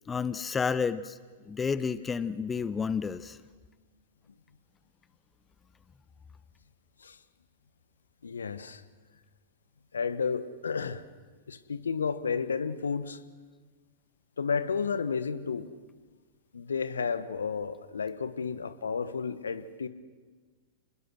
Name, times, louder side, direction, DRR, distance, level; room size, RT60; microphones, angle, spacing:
voice 1, 0.1-1.2 1.5-3.4, left 5 dB, 15° left, 16 dB, 0.7 m, -30 dB
voice 2, 8.2-8.8 9.9-11.0 11.5-13.2 14.4-15.7 16.5-19.9, left 5 dB, 75° left, 13 dB, 1.2 m, -32 dB
26.5 x 21.0 x 6.3 m, 1.4 s
figure-of-eight pair, 100°, 0 cm